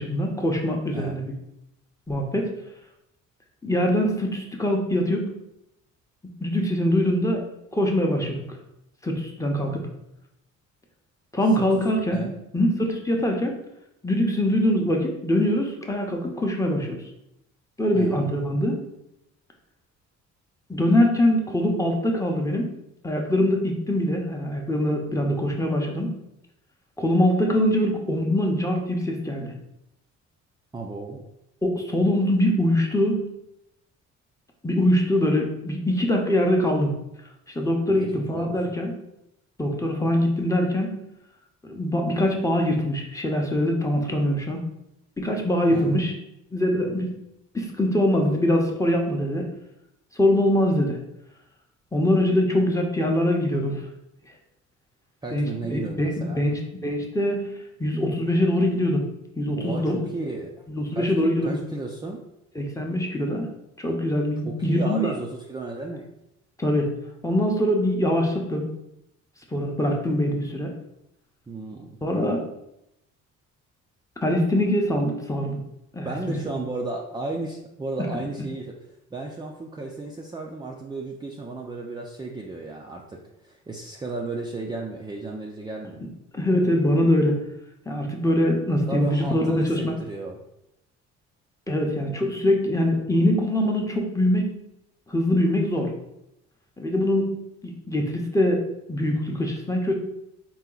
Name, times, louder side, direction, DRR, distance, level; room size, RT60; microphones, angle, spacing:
voice 1, 0.0-1.3 2.1-2.5 3.6-5.3 6.4-7.4 7.7-8.4 9.0-9.9 11.3-13.5 14.0-17.0 17.8-18.8 20.7-22.7 23.0-26.2 27.0-29.5 31.6-33.3 34.6-36.9 37.5-39.0 39.6-41.0 41.6-44.6 45.2-46.2 46.5-47.1 47.5-49.5 50.2-51.0 51.9-53.8 55.3-57.5 57.8-59.1 59.4-60.0 60.7-61.6 62.6-63.5 63.8-65.1 66.6-66.9 67.2-68.7 69.5-70.7 72.0-72.5 74.2-75.6 75.9-76.1 86.3-87.4 87.9-89.8 91.7-94.5 95.1-95.9 96.8-98.6 98.9-100.0, left 1 dB, 10° left, 1 dB, 0.8 m, -23 dB
voice 2, 30.7-31.3 37.9-38.6 45.7-46.0 55.2-56.5 59.6-60.6 61.0-62.2 64.5-66.1 71.5-72.0 76.0-78.8 79.1-86.0 88.9-90.4, right 2 dB, 15° right, -1 dB, 0.4 m, -34 dB
4.3 x 2.2 x 3.8 m, 0.83 s
cardioid pair, 90°, 30 cm